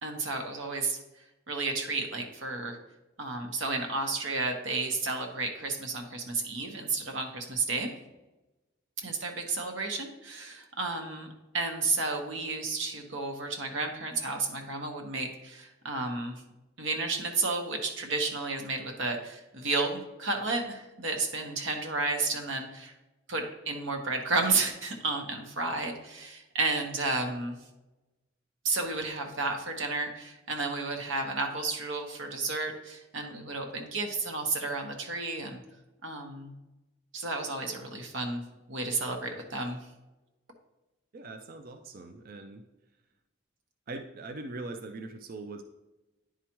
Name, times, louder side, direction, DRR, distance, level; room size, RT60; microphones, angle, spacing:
voice 1, 0.0-1.0 1.5-2.8 3.2-7.9 9.0-11.3 11.5-16.4 16.8-22.9 23.3-27.6 28.6-35.6 36.0-36.5 37.1-38.4 38.7-39.8, right 3 dB, 80° right, 4 dB, 1.1 m, -32 dB
voice 2, 41.1-42.6 43.9-45.6, right 2 dB, 50° right, 6 dB, 0.5 m, -41 dB
10.0 x 4.8 x 3.0 m, 1.0 s
head